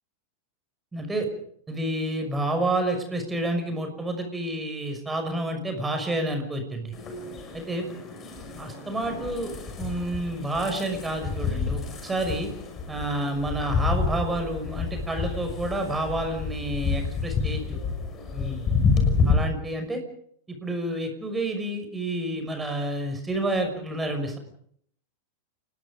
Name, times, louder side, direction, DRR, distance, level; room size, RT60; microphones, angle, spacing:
voice 1, 0.9-1.3 1.7-6.9 7.5-7.9 8.6-9.5 9.8-12.5 12.9-17.8 18.3-18.6 19.2-20.0 20.5-24.4, right 1 dB, 10° right, 5 dB, 6.0 m, -29 dB
sound 1, 6.9-19.3, left 5 dB, 25° left, 6.0 m, -29 dB
29.5 x 20.0 x 5.2 m, 0.65 s
figure-of-eight pair, 90°, 0 cm